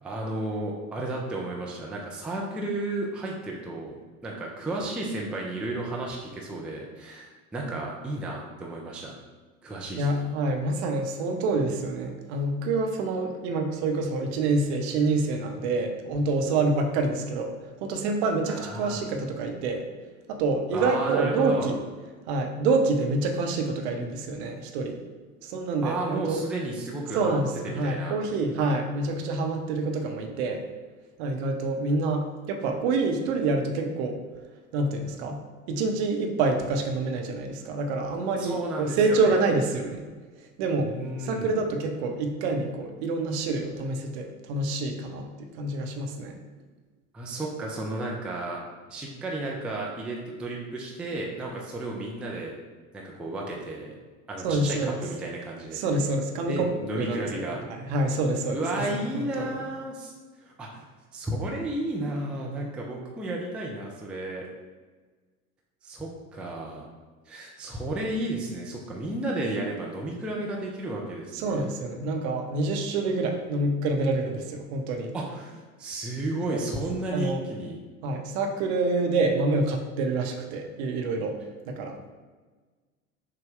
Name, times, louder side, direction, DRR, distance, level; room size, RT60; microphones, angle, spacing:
voice 1, 0.0-9.1 9.6-10.3 18.5-19.0 20.7-21.7 25.8-28.1 38.4-39.5 40.8-41.7 47.1-48.6 48.9-52.5 52.9-53.9 54.3-55.8 56.5-57.6 58.5-60.1 60.4-64.5 65.8-66.8 67.3-71.7 75.1-77.8, right 2 dB, 5° right, -2 dB, 0.4 m, -33 dB
voice 2, 10.0-17.5 17.8-19.8 20.3-21.8 22.3-25.0 25.4-26.4 27.1-30.6 31.2-34.2 34.7-35.4 35.7-40.0 40.6-40.9 41.2-46.3 54.4-55.0 55.7-56.7 57.0-58.8 59.1-59.7 71.3-75.1 76.5-76.6 77.1-77.4 78.0-81.4 81.7-82.0, right 3 dB, 50° right, 4 dB, 0.8 m, -27 dB
6.4 x 2.2 x 3.7 m, 1.4 s
figure-of-eight pair, 80°, 43 cm